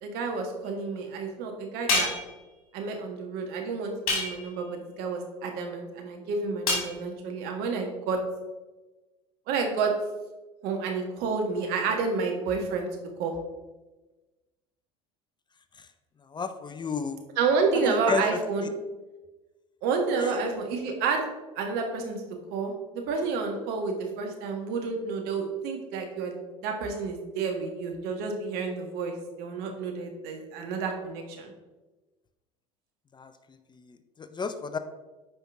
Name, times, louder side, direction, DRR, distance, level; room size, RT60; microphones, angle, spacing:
voice 1, 0.0-2.1 2.7-8.2 9.5-9.9 10.6-12.9 13.2-13.3 17.4-18.7 19.8-21.2 21.5-22.2 22.5-31.5, right 4 dB, 60° right, 3 dB, 1.6 m, -30 dB
sound 1, 1.9-2.4 4.1-4.6 6.7-6.9, left 2 dB, 80° left, 2.6 m, -27 dB
voice 2, 16.2-17.2 17.8-18.7 20.2-20.3 33.1-34.8, left 5 dB, 25° left, 10 dB, 0.6 m, -33 dB
8.9 x 5.3 x 3.6 m, 1.1 s
hypercardioid pair, 65°, 18 cm